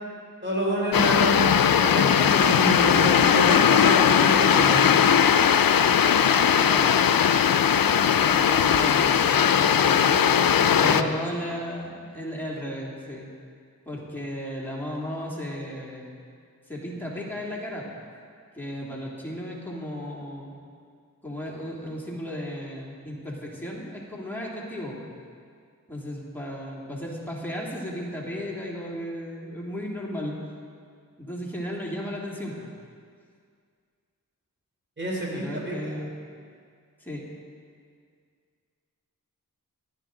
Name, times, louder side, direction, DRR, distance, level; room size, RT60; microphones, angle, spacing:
voice 1, 0.4-1.5 1.8-4.9 10.8-11.1 35.0-35.9, equal, 35° right, -3 dB, 3.5 m, -28 dB
sound 1, 0.9-11.0, left 8 dB, 80° left, 0.5 m, -19 dB
voice 2, 6.6-7.0 8.3-10.2 10.8-13.3 13.9-16.2 16.7-17.9 18.5-20.5 21.2-25.1 25.9-30.4 31.2-32.7 35.3-36.1 37.0-37.3, equal, 5° left, -4 dB, 2.4 m, -35 dB
17.0 x 10.5 x 3.8 m, 2.1 s
wide cardioid pair, 50°, 34 cm